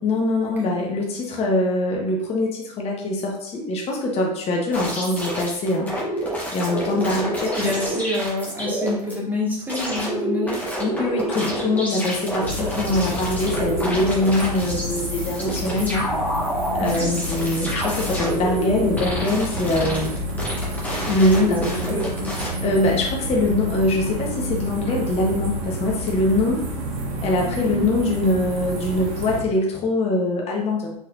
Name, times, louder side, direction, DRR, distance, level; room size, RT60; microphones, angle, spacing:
voice 1, 0.0-5.9 6.5-7.7 10.5-16.1 16.7-20.2 21.1-21.9 22.3-26.7 27.2-30.9, left 2 dB, 30° left, -1 dB, 1.1 m, -23 dB
sound 1, 4.7-9.1 9.7-22.5, right 1 dB, 10° left, 1.5 m, -28 dB
voice 2, 6.9-10.6 16.8-17.1 21.6-22.3, left 2 dB, 10° right, -5 dB, 1.7 m, -27 dB
sound 2, 12.4-29.4, right 1 dB, 60° right, 1.6 m, -29 dB
4.3 x 4.2 x 2.6 m, 0.73 s
hypercardioid pair, 95°, 21 cm